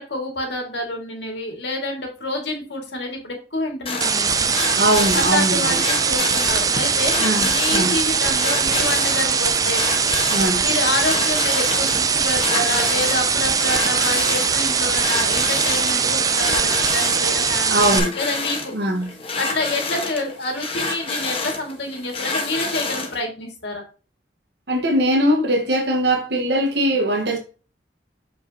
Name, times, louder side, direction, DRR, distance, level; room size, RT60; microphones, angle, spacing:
voice 1, 0.0-4.5 5.1-9.8 10.6-18.7 19.4-23.8, left 2 dB, 70° left, 2.0 m, -28 dB
sound 1, 3.9-23.2, left 3 dB, 30° left, 1.2 m, -29 dB
sound 2, 4.0-18.0, right 6 dB, 20° right, 0.4 m, -21 dB
voice 2, 4.7-5.8 7.2-8.0 10.3-10.6 17.7-18.1 18.7-19.2 24.7-27.4, right 1 dB, 70° right, 1.3 m, -21 dB
6.6 x 5.2 x 2.8 m
head